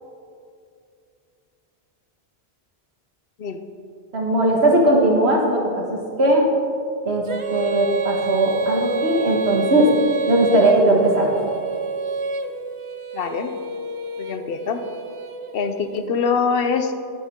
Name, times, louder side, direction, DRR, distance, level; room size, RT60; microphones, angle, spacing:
voice 1, 4.1-6.5 7.0-7.2 7.5-9.9 10.3-11.3, right 1 dB, 80° right, 0 dB, 1.7 m, -18 dB
Female singing, 7.2-16.1, right 3 dB, 45° right, 0.4 m, -28 dB
voice 2, 13.1-13.5 14.2-14.8 15.5-16.9, left 5 dB, 65° left, 8 dB, 0.8 m, -23 dB
11.5 x 9.3 x 3.6 m, 2.5 s
omnidirectional pair, 1.1 m